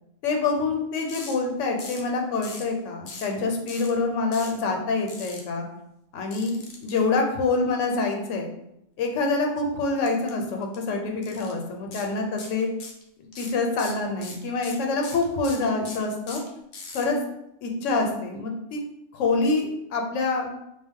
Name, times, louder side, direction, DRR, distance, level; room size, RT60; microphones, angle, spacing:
voice 1, 0.2-5.7 6.1-8.5 9.0-12.7 13.4-16.4 16.9-17.2 17.6-18.8 19.1-20.5, left 3 dB, 80° left, 2 dB, 0.9 m, -26 dB
sound 1, 1.1-1.3 1.8-2.1 2.4-2.7 3.1-3.3 3.7-3.9 4.3-4.6 5.1-5.4 6.3-6.9 10.0-10.3 10.6-10.8 11.2-11.5 11.9-12.1 12.4-13.0 13.3-17.0, left 4 dB, 60° left, 0.5 m, -40 dB
2.3 x 2.0 x 3.5 m, 0.81 s
omnidirectional pair, 1.3 m